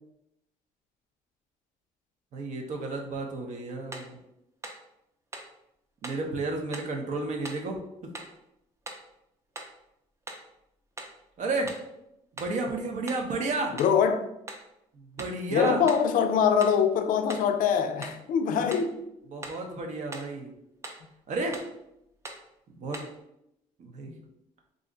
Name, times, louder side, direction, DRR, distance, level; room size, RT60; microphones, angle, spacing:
voice 1, 2.3-4.2 6.0-7.8 11.4-11.8 12.4-13.7 14.9-15.8 19.3-20.5 21.3-21.6 22.8-23.1 23.8-24.1, right 3 dB, 60° right, 3 dB, 0.6 m, -32 dB
sound 1, 3.9-4.1 4.6-4.9 5.3-5.6 6.0-6.3 6.7-7.0 7.4-7.7 8.1-8.4 8.9-9.1 9.6-9.8 10.3-10.5 11.0-11.2 11.7-11.9 12.4-12.6 13.1-13.3 13.8-14.0 14.5-14.7 15.2-15.4 15.9-16.1 16.6-16.8 17.3-17.5 18.0-18.2 18.7-18.9 19.4-19.7 20.1-20.3 20.8-21.1 21.5-21.8 22.2-22.5 22.9-23.2, right 2 dB, 20° right, 0.5 m, -42 dB
voice 2, 13.7-14.3 15.5-19.0 24.1-24.2, left 7 dB, 70° left, 7 dB, 0.4 m, -24 dB
2.5 x 2.1 x 3.7 m, 0.82 s
cardioid pair, 95°, 14 cm